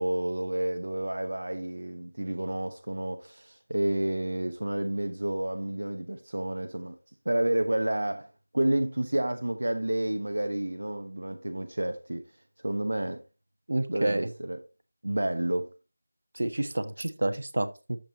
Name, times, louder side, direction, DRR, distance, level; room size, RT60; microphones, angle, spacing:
voice 1, 0.0-7.0 7.2-8.3 8.5-12.2 12.6-13.2 13.9-14.6 15.0-15.7, right 1 dB, 80° right, 1.0 m, -30 dB
voice 2, 13.7-14.3 16.3-18.0, right 1 dB, 65° right, 1.3 m, -29 dB
10.0 x 7.7 x 3.0 m
figure-of-eight pair, 175°, 0 cm